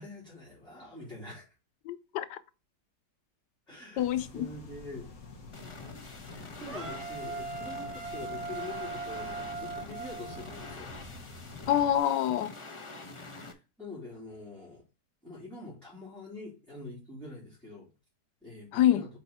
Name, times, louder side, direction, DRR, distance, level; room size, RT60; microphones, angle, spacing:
voice 1, 0.0-1.5 3.7-4.0 4.3-5.1 6.3-10.9 13.2-14.8 15.2-17.9 18.4-19.1, left 2 dB, ahead, 3.3 m, -45 dB
voice 2, 1.9-2.4 4.0-4.5 11.7-12.5 18.7-19.1, left 11 dB, 90° left, 1.3 m, -26 dB
sound 1, 4.0-12.0, left 3 dB, 60° left, 1.7 m, -48 dB
sound 2, 5.5-13.5, left 3 dB, 25° left, 0.7 m, -46 dB
sound 3, 6.7-10.8, right 4 dB, 45° right, 1.6 m, -39 dB
5.9 x 4.6 x 4.2 m
omnidirectional pair, 1.8 m